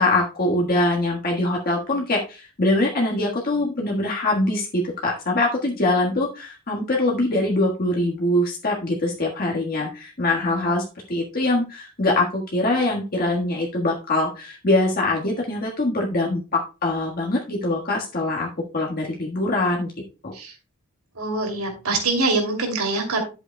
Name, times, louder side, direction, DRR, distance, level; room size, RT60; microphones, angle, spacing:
voice 1, 0.0-18.5 18.7-19.9 20.2-20.3, left 2 dB, 45° left, -2 dB, 1.5 m, -23 dB
voice 2, 21.2-23.2, right 3 dB, 85° right, 3 dB, 2.8 m, -24 dB
11.5 x 7.9 x 2.2 m, 0.31 s
head